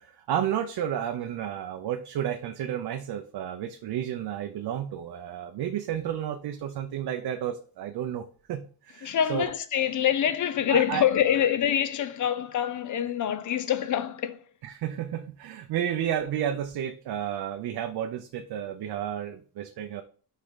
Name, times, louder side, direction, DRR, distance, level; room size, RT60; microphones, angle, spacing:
voice 1, 0.0-9.5 10.7-11.0 14.6-20.0, right 10 dB, 65° right, 0.7 m, -32 dB
voice 2, 9.0-14.4, left 9 dB, 50° left, 0.6 m, -25 dB
5.4 x 3.7 x 5.6 m
cardioid pair, 175°, 41 cm